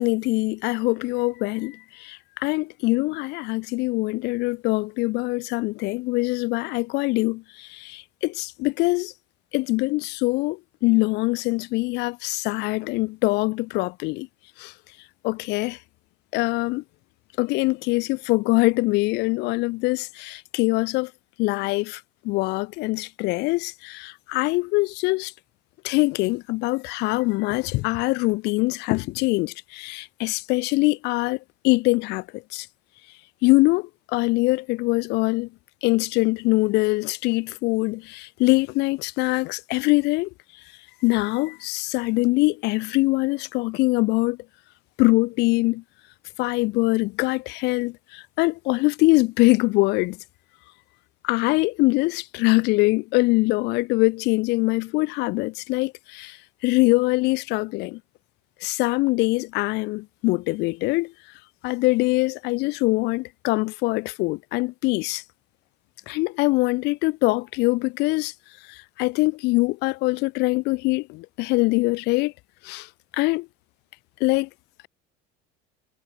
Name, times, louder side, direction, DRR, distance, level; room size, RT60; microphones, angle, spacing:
voice 1, 0.0-9.1 9.5-14.3 14.6-14.7 15.2-15.8 16.3-16.8 17.4-21.1 21.4-25.3 25.8-31.4 31.6-32.2 32.5-32.7 33.4-35.5 35.8-40.3 41.0-44.4 45.0-45.8 46.4-50.2 51.2-56.4 56.6-58.0 58.6-61.1 61.6-65.2 66.1-68.3 69.0-72.3 72.6-72.9 73.2-73.5 74.2-74.5, left 23 dB, 70° left, 3.5 m, -23 dB
cardioid pair, 140°, 18 cm